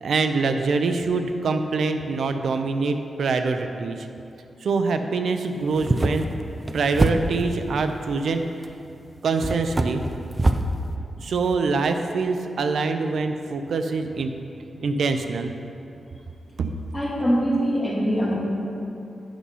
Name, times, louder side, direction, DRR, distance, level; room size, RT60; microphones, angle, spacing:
voice 1, 0.0-4.0 4.6-6.3 6.7-8.4 9.2-10.0 11.2-14.3 14.8-15.5, right 4 dB, 75° right, 7 dB, 0.5 m, -24 dB
sound 1, 5.7-7.6 8.6-8.7 9.4-10.7, right 2 dB, 20° right, 0.4 m, -24 dB
voice 2, 16.9-18.3, equal, 10° left, -7 dB, 2.2 m, -23 dB
8.9 x 5.6 x 5.5 m, 2.6 s
wide cardioid pair, 140°, 0 cm